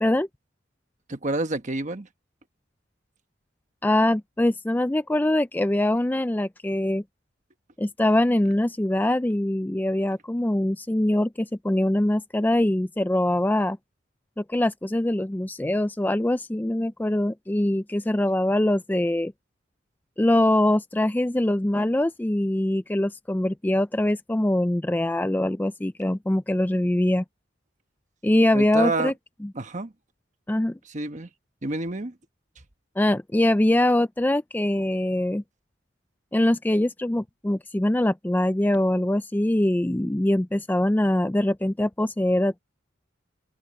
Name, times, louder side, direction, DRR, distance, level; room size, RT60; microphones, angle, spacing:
voice 1, 1.1-2.1 28.5-29.1 29.5-29.9 30.9-31.3 31.6-32.1, right 2 dB, 40° right, 1.2 m, -28 dB
voice 2, 3.8-7.0 7.8-13.8 14.4-19.3 20.2-27.2 28.2-29.1 30.5-30.8 33.0-35.4 36.3-42.6, left 1 dB, 10° left, 0.4 m, -23 dB
open air
head